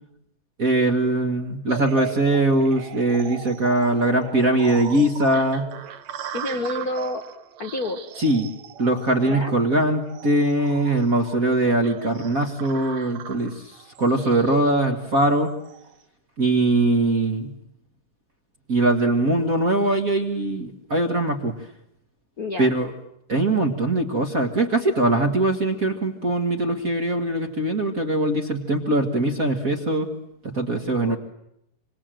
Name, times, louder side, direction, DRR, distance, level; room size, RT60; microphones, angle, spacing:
voice 1, 0.6-5.7 8.2-8.5 8.8-15.5 16.4-17.5 18.7-21.5 22.6-22.9 23.3-30.1 30.4-31.2, right 2 dB, 35° right, 4 dB, 1.3 m, -21 dB
sound 1, 1.7-15.9, right 8 dB, 60° right, 2.2 m, -39 dB
voice 2, 6.3-7.2 7.6-8.0 9.2-9.5 22.4-22.7 31.0-31.2, left 2 dB, 85° left, 4 dB, 0.8 m, -28 dB
27.0 x 25.5 x 7.7 m, 0.79 s
omnidirectional pair, 4.0 m